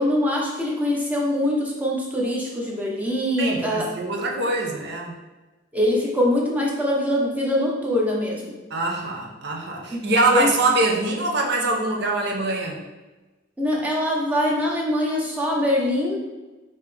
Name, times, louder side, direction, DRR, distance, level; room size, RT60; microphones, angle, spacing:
voice 1, 0.0-3.8 5.7-8.5 9.9-10.0 10.3-10.5 13.6-16.2, left 1 dB, 10° right, -3 dB, 0.8 m, -23 dB
voice 2, 3.4-5.1 8.7-12.8, right 2 dB, 60° right, 0 dB, 0.8 m, -23 dB
5.2 x 2.9 x 3.4 m, 1.1 s
head